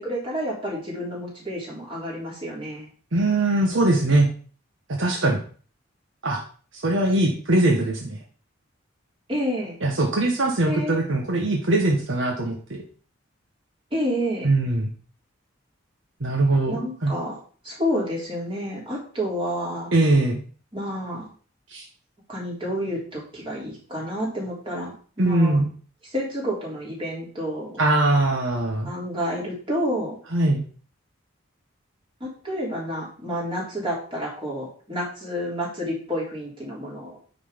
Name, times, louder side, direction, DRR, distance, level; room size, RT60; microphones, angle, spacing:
voice 1, 0.0-2.9 9.3-9.7 10.6-11.0 13.9-14.5 16.7-17.4 17.6-19.9 20.7-21.3 22.3-25.6 26.1-27.8 28.8-30.2 32.2-37.2, equal, 25° right, -4 dB, 3.3 m, -29 dB
voice 2, 3.1-4.3 4.9-5.4 6.2-6.4 6.7-8.2 9.8-12.6 14.4-14.9 16.2-17.1 19.9-20.4 21.7-21.8 25.2-25.6 27.8-28.9 30.3-30.7, right 2 dB, 65° right, 1 dB, 1.2 m, -21 dB
9.2 x 4.2 x 5.1 m, 0.42 s
head